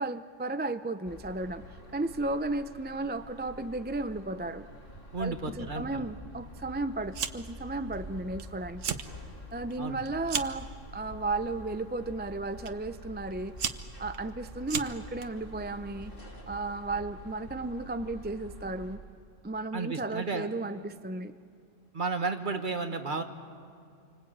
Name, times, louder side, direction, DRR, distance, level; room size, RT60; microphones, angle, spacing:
voice 1, 0.0-4.7 5.2-9.0 9.5-10.7 10.9-13.5 14.0-16.1 16.5-19.0 19.4-21.3, right 2 dB, 15° right, 10 dB, 0.3 m, -34 dB
sound 1, 1.0-19.0, left 1 dB, 45° left, 3.5 m, -47 dB
voice 2, 5.1-6.0 9.8-10.0 19.7-20.5 21.9-23.2, right 4 dB, 40° right, 6 dB, 1.7 m, -33 dB
Fire, 7.1-7.6 7.9-8.4 8.7-9.1 9.5-10.7 11.4-11.8 12.7-12.8 13.3-15.3, right 7 dB, 85° right, 1.4 m, -35 dB
27.5 x 24.5 x 8.7 m, 2.4 s
omnidirectional pair, 1.3 m